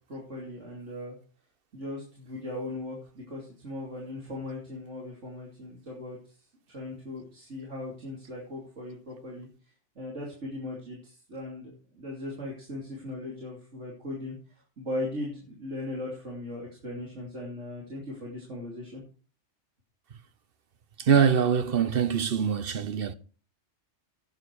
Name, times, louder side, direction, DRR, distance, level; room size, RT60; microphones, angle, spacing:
voice 1, 0.1-1.2 1.7-6.2 6.7-9.5 9.9-14.4 14.8-19.0, left 1 dB, 85° right, 3.2 m, -38 dB
voice 2, 21.0-23.1, right 7 dB, 55° right, 1.0 m, -24 dB
11.5 x 9.5 x 4.7 m
omnidirectional pair, 1.2 m